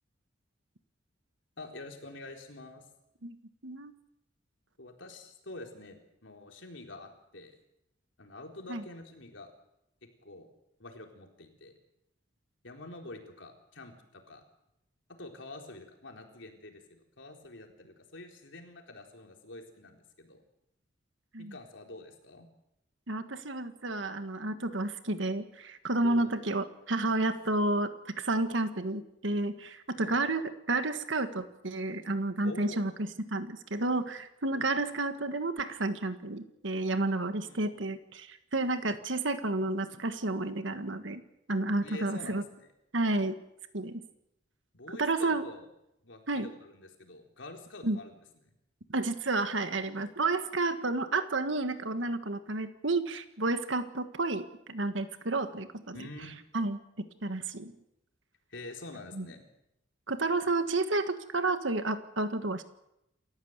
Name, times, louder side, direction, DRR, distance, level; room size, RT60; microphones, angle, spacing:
voice 1, 1.6-2.8 4.8-7.5 8.2-9.5 10.2-10.5 10.8-11.7 12.6-14.4 15.2-20.4 21.4-22.5 26.0-26.3 30.0-30.2 32.4-32.9 34.5-34.7 37.5-37.7 41.8-42.7 44.7-45.7 46.0-48.1 48.4-48.5 55.9-56.4 58.5-59.4, left 2 dB, 70° left, 3 dB, 4.2 m, -47 dB
voice 2, 23.1-32.9 33.3-41.2 41.5-42.4 42.9-43.3 43.7-44.0 44.9-45.5 46.3-46.5 47.8-48.0 48.9-56.1 56.5-56.8 57.2-57.7 59.1-59.2 60.1-62.6, right 2 dB, 70° right, 9 dB, 1.6 m, -31 dB
28.5 x 15.0 x 8.1 m, 0.83 s
head